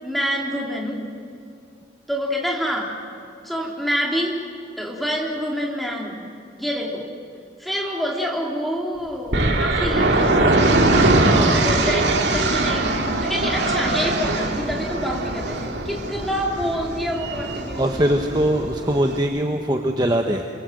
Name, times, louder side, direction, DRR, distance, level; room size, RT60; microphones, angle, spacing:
voice 1, 0.0-1.0 2.1-3.0 3.4-4.4 4.8-6.3 6.6-7.1 7.6-10.7 11.5-18.1, equal, ahead, -2 dB, 3.6 m, -27 dB
sound 1, 9.3-19.2, right 2 dB, 65° right, 2.5 m, -21 dB
voice 2, 11.2-11.7 17.7-20.5, right 1 dB, 20° right, 4 dB, 1.1 m, -22 dB
29.5 x 22.0 x 7.8 m, 2.4 s
head